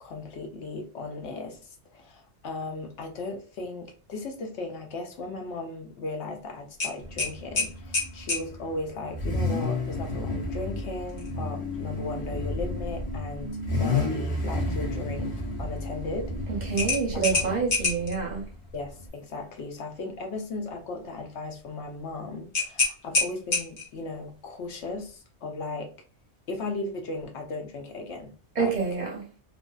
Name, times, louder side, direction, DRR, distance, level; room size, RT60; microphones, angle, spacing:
voice 1, 0.0-1.6 1.9-15.3 15.6-16.3 16.6-16.9 17.1-17.7 18.7-25.9 26.5-28.3 28.6-28.8, left 3 dB, 80° left, 1.0 m, -36 dB
sound 1, 6.8-8.5 11.1-11.3 11.7-11.8 16.8-18.2 22.5-24.0, left 3 dB, 55° left, 1.0 m, -27 dB
Car / Idling / Accelerating revving vroom, 7.0-19.1, left 2 dB, 35° left, 0.7 m, -32 dB
voice 2, 16.5-18.5 28.5-29.3, right 5 dB, 50° right, 0.6 m, -28 dB
2.5 x 2.1 x 2.2 m
omnidirectional pair, 1.1 m